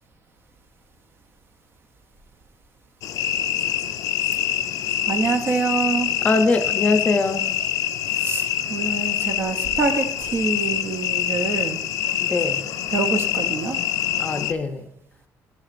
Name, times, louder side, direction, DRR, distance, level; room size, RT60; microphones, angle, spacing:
sound 1, 3.0-14.5, left 11 dB, 75° left, 0.4 m, -25 dB
voice 1, 5.1-6.1 8.1-11.8 12.9-13.8, right 4 dB, 40° right, 8 dB, 0.6 m, -25 dB
voice 2, 6.2-7.4 12.2-12.7 14.2-14.9, left 3 dB, 25° left, 6 dB, 0.5 m, -22 dB
12.5 x 6.5 x 2.5 m, 0.80 s
cardioid pair, 170°, 6 cm